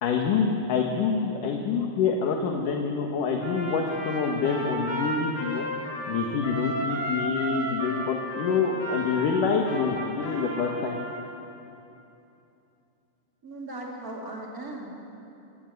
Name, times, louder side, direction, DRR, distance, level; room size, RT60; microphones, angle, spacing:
voice 1, 0.0-5.6 6.1-11.0, left 5 dB, 65° left, 1 dB, 3.0 m, -26 dB
Trumpet, 3.4-11.2, right 1 dB, 85° left, 8.9 m, -33 dB
voice 2, 13.4-14.9, right 2 dB, 25° right, -2 dB, 4.1 m, -37 dB
26.0 x 18.5 x 9.4 m, 2.8 s
omnidirectional pair, 4.3 m